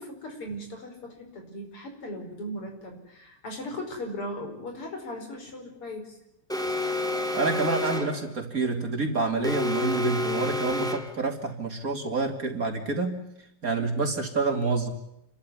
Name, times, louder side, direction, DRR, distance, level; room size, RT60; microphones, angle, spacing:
voice 1, 0.0-6.2, left 1 dB, 80° left, 3 dB, 6.0 m, -38 dB
Alarm, 6.5-8.2 9.4-11.2, left 2 dB, ahead, 2.2 m, -29 dB
voice 2, 7.0-13.2 13.6-14.9, right 3 dB, 40° right, 4 dB, 3.0 m, -28 dB
29.5 x 13.0 x 9.8 m, 0.82 s
omnidirectional pair, 2.4 m